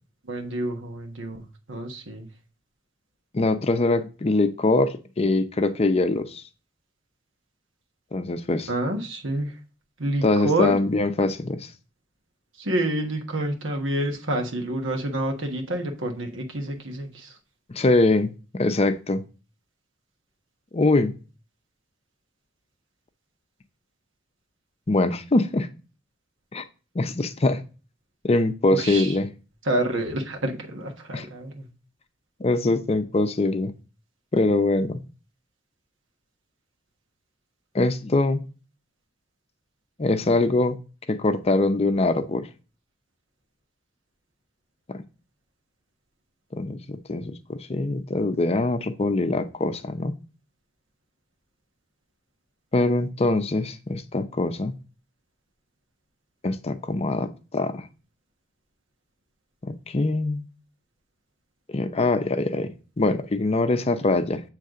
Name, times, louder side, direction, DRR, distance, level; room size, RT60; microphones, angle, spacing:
voice 1, 0.2-2.3 8.7-9.5 10.0-10.7 12.6-17.4 28.7-29.2 29.6-31.7, right 1 dB, 90° right, 1.4 m, -28 dB
voice 2, 3.3-6.4 8.1-8.7 10.2-11.7 17.7-19.2 20.7-21.2 24.9-25.7 26.5-26.6 26.9-27.6 28.2-29.3 31.1-31.3 32.4-33.7 34.3-35.0 37.7-38.5 40.0-40.8 41.1-42.5 44.9-45.0 46.5-50.2 52.7-54.8 56.4-57.9 59.6-60.4 61.7-62.7 63.0-64.4, left 2 dB, 30° left, 0.5 m, -23 dB
8.0 x 3.3 x 3.7 m
head